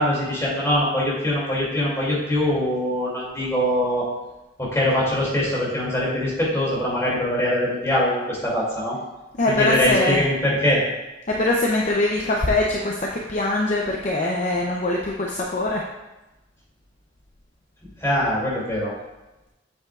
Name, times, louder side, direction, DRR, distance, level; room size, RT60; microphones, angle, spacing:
voice 1, 0.0-4.1 4.6-9.0 9.6-10.8 18.0-18.9, left 1 dB, 15° left, -6 dB, 2.6 m, -22 dB
voice 2, 9.3-10.2 11.3-15.8, left 2 dB, 40° left, -1 dB, 0.6 m, -22 dB
7.8 x 7.1 x 2.4 m, 1.0 s
head